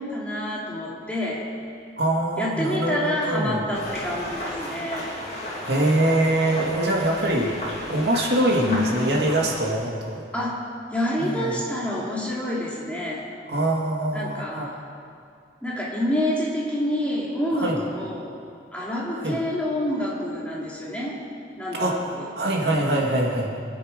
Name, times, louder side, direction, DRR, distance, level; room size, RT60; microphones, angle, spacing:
voice 1, 0.0-1.5 2.4-5.1 8.6-8.8 10.3-10.6 10.9-13.3 14.1-14.8 15.6-18.3 18.7-21.2 21.6-22.3, left 1 dB, 10° left, -6 dB, 2.6 m, -27 dB
voice 2, 2.0-3.7 5.6-7.6 7.9-10.2 11.2-11.5 13.5-14.7 17.5-17.8 19.2-19.4 21.7-23.5, right 1 dB, 75° right, -1 dB, 2.1 m, -24 dB
sound 1, 3.7-9.7, equal, 40° left, 2.9 m, -34 dB
23.5 x 9.5 x 5.1 m, 2.4 s
head